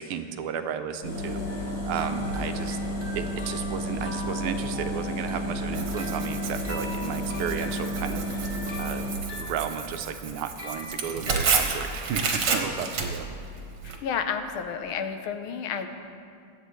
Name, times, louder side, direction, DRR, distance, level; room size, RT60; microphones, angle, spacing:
voice 1, 0.0-2.8 3.1-9.1 9.4-13.3, right 8 dB, 85° right, 8 dB, 1.6 m, -33 dB
sound 1, 1.0-9.1, equal, 55° left, 2.9 m, -31 dB
sound 2, 1.5-11.5, left 3 dB, 5° right, 2.5 m, -42 dB
Tearing, 5.7-14.0, right 5 dB, 60° right, 1.7 m, -31 dB
voice 2, 13.8-15.9, left 7 dB, 80° left, 7 dB, 1.7 m, -31 dB
23.0 x 8.8 x 3.2 m, 2.4 s
omnidirectional pair, 2.3 m